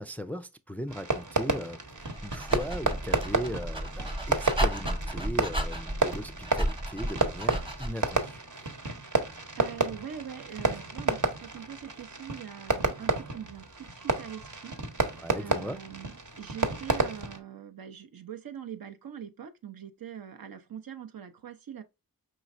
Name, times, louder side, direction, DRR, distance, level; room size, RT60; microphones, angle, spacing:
voice 1, 0.0-8.4 15.2-15.8, equal, 5° left, 0.3 m, -38 dB
Fireworks, 0.9-17.4, right 2 dB, 60° right, 1.0 m, -31 dB
Dog, 2.0-8.1, equal, 15° right, 0.9 m, -33 dB
voice 2, 9.5-21.8, right 8 dB, 75° right, 0.7 m, -43 dB
5.0 x 3.1 x 2.5 m
cardioid pair, 45°, 35 cm